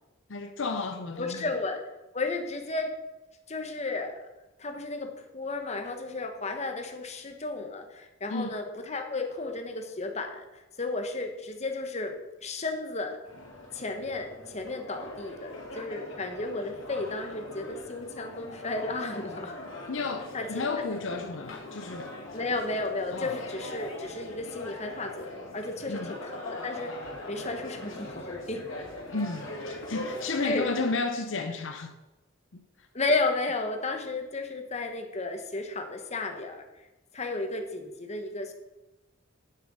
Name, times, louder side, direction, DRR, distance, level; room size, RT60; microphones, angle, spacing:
voice 1, 0.3-1.5 8.3-8.6 19.9-22.2 23.1-23.4 25.9-26.2 29.1-31.9 32.5-32.6, left 3 dB, 70° left, 0.7 m, -32 dB
voice 2, 1.2-1.8 2.1-2.9 3.5-4.2 4.6-12.2 12.4-13.2 13.7-19.6 20.3-20.8 22.3-27.0 27.3-28.7 30.4-30.7 32.9-36.6 37.1-38.5, left 3 dB, 35° left, 1.2 m, -33 dB
sound 1, 13.2-30.9, left 1 dB, 85° left, 2.5 m, -41 dB
9.2 x 7.4 x 5.4 m
head